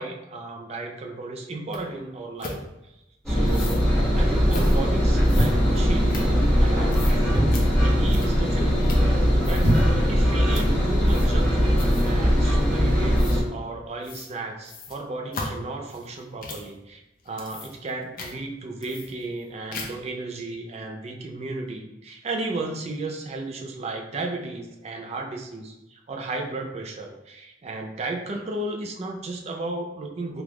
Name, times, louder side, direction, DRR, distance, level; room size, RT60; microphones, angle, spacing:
voice 1, 0.0-2.6 2.8-2.9 3.3-3.8 4.1-8.8 9.4-17.0 17.3-30.4, right 2 dB, 35° right, 2 dB, 0.4 m, -34 dB
sound 1, 1.7-1.8 2.4-2.6 3.4-3.8 4.5-4.8 5.2-6.6 6.9-7.2 7.5-7.7 8.1-8.5 8.8-9.1 9.4-9.8 10.5-10.7 11.1-11.4 11.8-12.2 13.1-13.4 14.0-14.3 14.6-16.7 17.2-17.9 18.2-18.3 18.8-19.4 19.7-20.1, left 2 dB, 50° left, 0.6 m, -37 dB
Engine, 3.3-13.4, equal, 5° left, 0.8 m, -20 dB
sound 2, 5.3-6.3 6.8-6.9 7.1-7.8 8.3-8.5 8.8-8.9 9.4-10.1 10.5-10.6, equal, 85° right, 1.3 m, -24 dB
3.4 x 2.4 x 3.0 m, 0.91 s
head